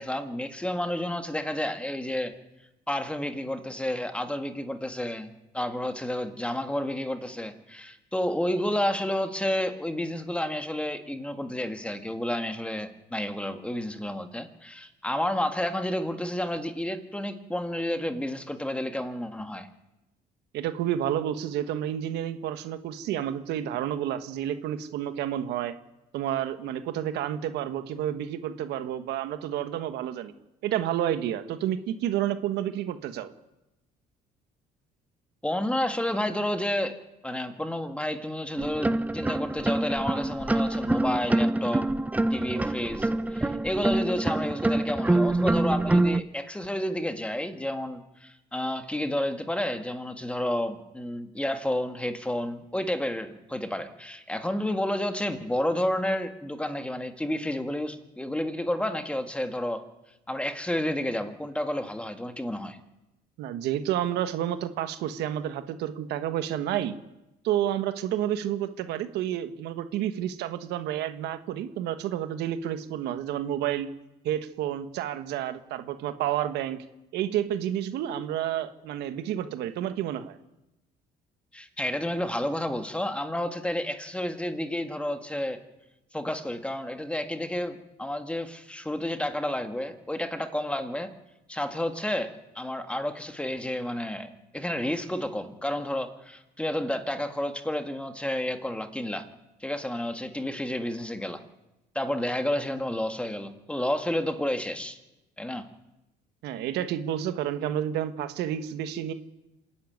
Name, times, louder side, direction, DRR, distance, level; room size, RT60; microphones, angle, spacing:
voice 1, 0.0-2.3 2.9-19.7 35.4-37.0 37.2-41.9 42.3-59.9 60.3-62.8 81.5-85.6 86.1-91.1 91.5-99.3 99.6-101.4 101.9-105.0 105.4-105.7, left 1 dB, 5° left, 8 dB, 1.7 m, -30 dB
voice 2, 20.5-25.7 26.1-30.3 30.6-33.3 63.4-66.9 67.4-73.9 74.2-76.8 77.1-80.4 106.4-109.1, right 11 dB, 85° right, 10 dB, 1.4 m, -30 dB
sound 1, 38.6-46.2, right 2 dB, 10° right, 0.6 m, -26 dB
26.5 x 10.5 x 9.4 m, 0.96 s
cardioid pair, 110°, 17 cm